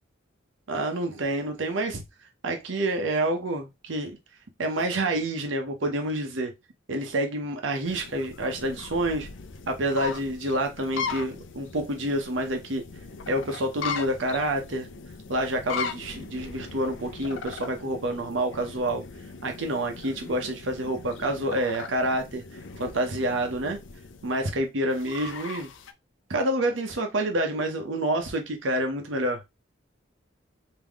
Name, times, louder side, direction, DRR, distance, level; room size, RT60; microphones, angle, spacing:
voice 1, 0.7-2.0 2.4-4.2 4.6-6.5 6.9-9.3 9.7-12.8 13.3-14.9 15.3-19.0 19.4-22.4 22.8-23.8 24.2-25.7 26.3-29.5, right 1 dB, 75° right, 0.9 m, -28 dB
sound 1, 7.8-25.9, left 5 dB, 70° left, 0.6 m, -39 dB
3.6 x 2.9 x 3.5 m
head